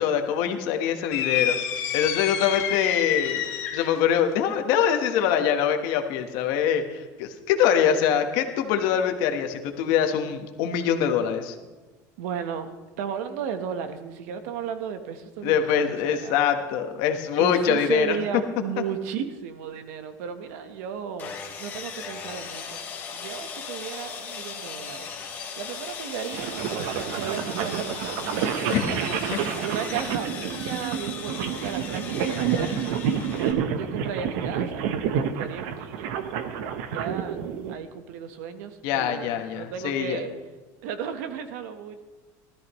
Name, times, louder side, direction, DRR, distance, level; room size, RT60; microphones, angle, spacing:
voice 1, 0.0-1.6 1.9-3.4 3.7-11.6 15.4-18.2 28.7-29.0 29.3-29.4 38.8-40.2, left 8 dB, 55° left, 6 dB, 1.3 m, -24 dB
sound 1, 1.1-4.0, left 9 dB, 80° left, 2.0 m, -28 dB
voice 2, 12.2-12.7 13.0-15.9 16.2-16.3 17.4-22.8 23.1-26.5 27.1-28.2 28.7-33.2 33.7-36.1 36.9-40.3 40.8-42.0, right 8 dB, 85° right, 9 dB, 1.2 m, -35 dB
Sawing, 21.2-33.5, left 6 dB, 25° left, 1.8 m, -37 dB
sound 2, 26.3-37.7, right 8 dB, 70° right, 0.9 m, -29 dB
19.5 x 13.0 x 3.1 m, 1.3 s
cardioid pair, 180°, 8 cm